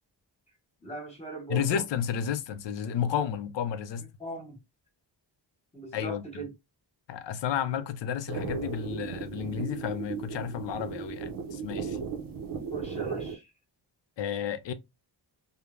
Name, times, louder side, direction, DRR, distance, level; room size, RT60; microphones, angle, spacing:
voice 1, 0.8-1.6 4.2-4.6 5.7-6.5 12.7-13.5, right 3 dB, 15° left, 0.9 m, -39 dB
voice 2, 1.5-4.1 5.9-6.2 7.1-12.0 14.2-14.7, left 8 dB, 80° left, 0.5 m, -31 dB
sound 1, 8.3-13.4, right 6 dB, 55° right, 0.5 m, -36 dB
3.1 x 2.1 x 2.3 m
wide cardioid pair, 175°, 42 cm